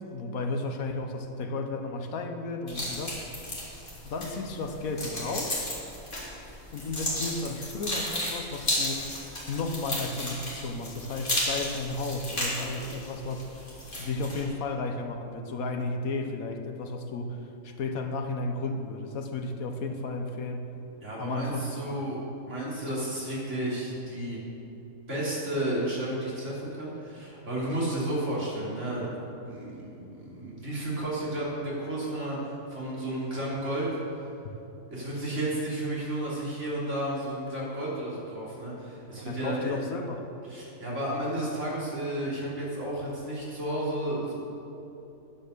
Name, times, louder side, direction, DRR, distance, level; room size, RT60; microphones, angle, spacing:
voice 1, 0.0-3.2 4.0-5.7 6.7-13.6 14.0-20.7 21.2-22.2 39.2-40.3, left 3 dB, 75° left, 5 dB, 1.3 m, -33 dB
sound 1, 2.7-14.5, left 1 dB, 35° left, 3.2 m, -34 dB
voice 2, 21.0-22.2 22.5-24.4 25.1-33.9 34.9-39.8 40.5-44.3, right 1 dB, 55° right, -6 dB, 3.5 m, -32 dB
10.5 x 9.8 x 6.6 m, 2.9 s
omnidirectional pair, 1.5 m